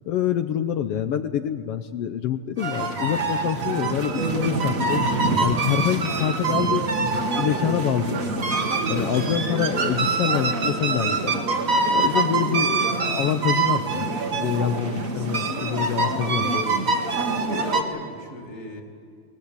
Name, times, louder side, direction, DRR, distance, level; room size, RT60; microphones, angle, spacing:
voice 1, 0.1-5.1 5.4-6.9 7.4-8.3 8.9-11.3 11.9-16.9, left 9 dB, 75° left, 9 dB, 1.4 m, -26 dB
sound 1, 2.6-17.8, right 3 dB, 35° right, 1.6 m, -24 dB
voice 2, 17.0-18.8, left 2 dB, 25° left, 2 dB, 2.5 m, -38 dB
23.0 x 19.5 x 8.5 m, 2.3 s
omnidirectional pair, 3.5 m